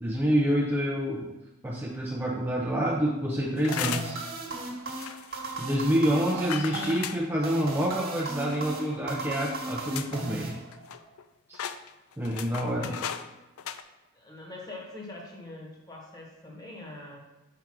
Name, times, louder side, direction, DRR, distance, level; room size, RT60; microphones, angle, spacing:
voice 1, 0.0-1.3 1.6-4.3 5.6-10.5 11.5-11.6 12.2-12.9, equal, 10° right, -4 dB, 0.5 m, -27 dB
sound 1, 3.6-4.2 5.0-5.3 6.5-7.2 8.5-9.0 9.5-9.6 9.9-10.2 10.5-11.2 11.5-13.3 13.6-13.8, left 9 dB, 80° left, 0.4 m, -36 dB
sound 2, 3.7-11.1, right 2 dB, 45° right, 1.4 m, -36 dB
voice 2, 12.8-13.2 14.1-17.3, left 2 dB, 20° left, -2 dB, 1.2 m, -43 dB
5.0 x 4.6 x 5.9 m, 1.0 s
head